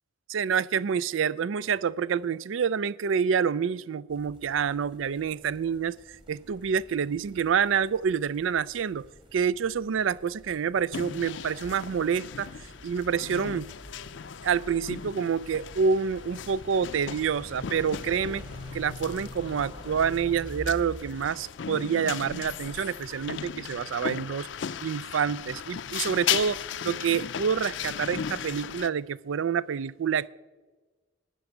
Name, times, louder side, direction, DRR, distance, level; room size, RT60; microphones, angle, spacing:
voice 1, 0.3-6.0 6.3-9.1 9.3-12.5 12.8-13.7 14.4-18.4 18.7-24.5 24.8-30.3, right 7 dB, 85° right, 0.4 m, -27 dB
sound 1, 4.1-21.3, left 1 dB, 25° right, 1.6 m, -47 dB
sound 2, 10.9-28.9, left 8 dB, 70° left, 0.5 m, -37 dB
13.0 x 7.7 x 9.2 m
head